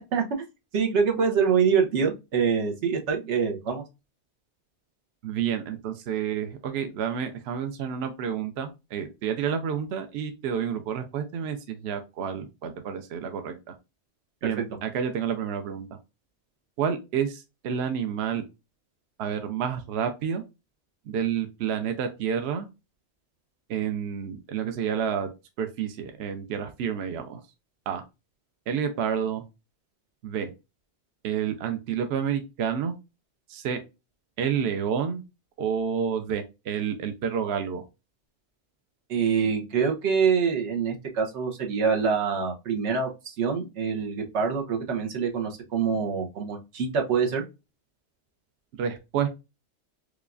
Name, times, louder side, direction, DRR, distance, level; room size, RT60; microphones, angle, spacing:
voice 1, 0.1-0.5 0.7-3.8 14.6-14.7 39.1-47.4, right 6 dB, 90° right, 3 dB, 1.1 m, -25 dB
voice 2, 5.2-13.7 14.4-15.9 16.8-18.4 19.2-20.4 21.1-22.7 23.7-25.3 25.6-27.4 27.9-28.0 28.7-29.4 30.2-30.5 31.2-33.0 33.5-33.8 34.4-35.2 35.6-37.8 48.8-49.3, right 8 dB, 70° right, 7 dB, 0.8 m, -29 dB
4.9 x 2.3 x 2.4 m, 0.26 s
omnidirectional pair, 1.1 m